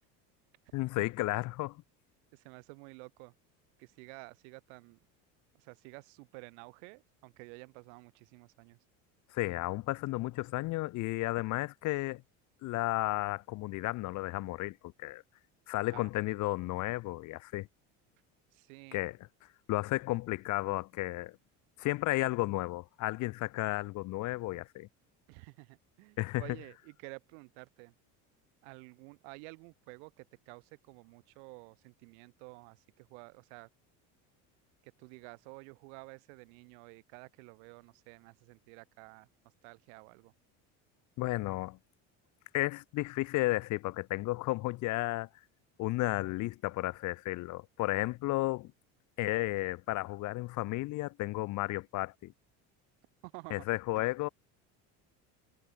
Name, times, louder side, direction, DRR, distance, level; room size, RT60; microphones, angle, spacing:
voice 1, 0.7-1.8 9.3-12.2 12.6-15.2 15.7-17.7 18.9-19.2 19.7-21.4 21.8-24.9 26.2-26.4 41.2-41.8 42.5-45.3 45.8-48.7 49.2-52.3 53.5-54.3, left 19 dB, 55° left, 1.1 m, -33 dB
voice 2, 2.3-3.3 3.8-5.0 5.5-8.8 15.9-16.1 18.5-19.0 25.3-27.9 28.6-33.7 34.8-39.3 39.6-40.3 53.2-53.7 54.0-54.1, right 38 dB, 85° right, 2.4 m, -51 dB
cardioid pair, 135°, 35 cm